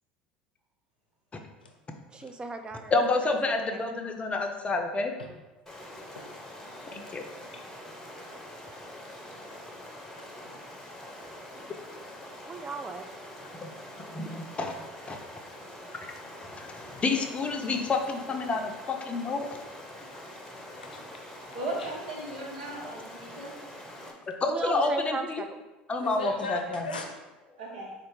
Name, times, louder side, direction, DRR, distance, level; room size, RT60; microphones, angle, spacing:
voice 1, 2.1-2.9 3.5-3.8 12.4-13.0 24.5-25.6, right 4 dB, 20° right, 6 dB, 0.5 m, -36 dB
voice 2, 2.9-5.1 6.9-7.3 13.6-13.7 14.1-14.7 15.1-15.2 16.4-19.6 22.8-22.9 24.3-25.4 25.9-26.9, left 3 dB, 25° left, 4 dB, 0.6 m, -29 dB
Stream, 5.7-24.1, left 1 dB, 10° left, 0.9 m, -45 dB
voice 3, 6.1-7.0 7.5-7.6 9.6-9.7 10.2-10.6 13.4-13.5 16.1-16.3 20.7-21.0 21.8-21.9 24.8-24.9 25.9-27.1, left 2 dB, 85° left, 2 dB, 0.6 m, -41 dB
voice 4, 21.5-23.5 26.1-26.3 27.6-27.9, right 2 dB, 70° right, -3 dB, 1.3 m, -37 dB
4.3 x 2.5 x 4.7 m, 1.1 s
figure-of-eight pair, 70°, 5 cm